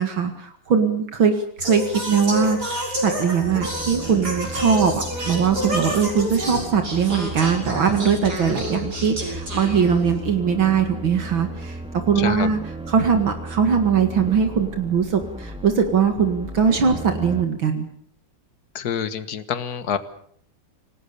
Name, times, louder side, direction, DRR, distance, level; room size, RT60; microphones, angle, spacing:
voice 1, 0.0-12.6 12.9-17.9, right 6 dB, 65° right, 7 dB, 2.7 m, -21 dB
Singing, 1.6-10.3, right 1 dB, 45° right, 6.9 m, -29 dB
sound 1, 3.4-17.4, right 2 dB, 5° right, 2.0 m, -36 dB
voice 2, 12.2-12.5 18.8-20.0, left 8 dB, 50° left, 13 dB, 1.8 m, -27 dB
27.5 x 19.0 x 6.9 m, 0.62 s
omnidirectional pair, 2.3 m